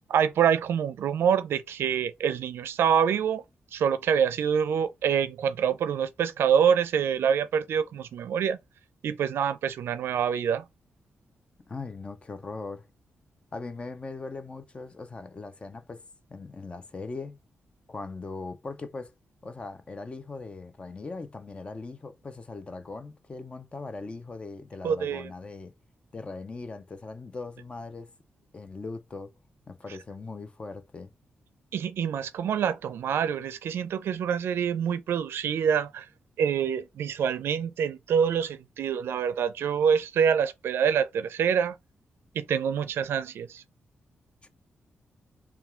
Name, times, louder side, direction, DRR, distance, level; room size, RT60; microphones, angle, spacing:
voice 1, 0.1-3.4 3.7-8.6 9.0-10.6 24.8-25.3 31.7-36.0 36.4-41.8 42.3-43.6, right 7 dB, 85° right, 0.4 m, -26 dB
voice 2, 11.7-12.9 13.5-16.0 16.3-17.4 17.9-19.1 19.4-25.7 26.1-28.1 28.5-29.3 29.7-31.1 44.4-44.5, left 3 dB, 30° left, 0.6 m, -40 dB
3.5 x 2.3 x 4.3 m
wide cardioid pair, 120°, 4 cm